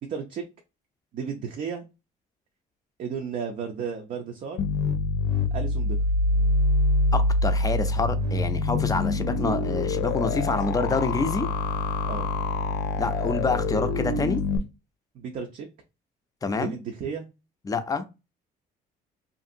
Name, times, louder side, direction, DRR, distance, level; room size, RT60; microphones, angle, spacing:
voice 1, 0.1-0.5 1.1-1.8 3.0-4.6 5.5-6.0 8.6-8.8 10.5-10.7 12.0-12.3 15.1-15.7 16.5-17.3, right 6 dB, 50° right, 4 dB, 0.5 m, -33 dB
sound 1, 4.6-14.6, left 2 dB, 75° left, 0.5 m, -25 dB
voice 2, 7.1-11.5 13.0-14.4 16.4-16.8 17.7-18.0, left 4 dB, 20° left, 10 dB, 0.4 m, -27 dB
2.8 x 2.6 x 2.6 m, 0.27 s
cardioid pair, 110°, 17 cm